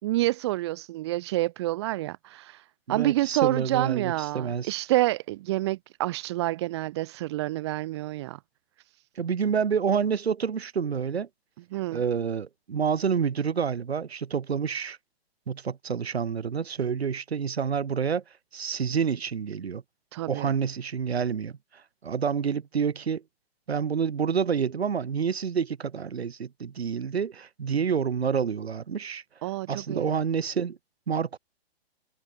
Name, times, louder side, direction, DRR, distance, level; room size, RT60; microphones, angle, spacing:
voice 1, 0.0-8.4 11.7-12.0 20.1-20.5 29.4-30.1, right 17 dB, 25° right, 2.0 m, -28 dB
voice 2, 2.9-4.7 9.2-11.3 11.9-15.0 15.5-18.2 18.5-19.8 20.3-21.6 22.0-23.2 23.7-29.2 29.7-30.8 31.1-31.4, right 6 dB, 90° right, 7.7 m, -28 dB
hypercardioid pair, 175°, 30 cm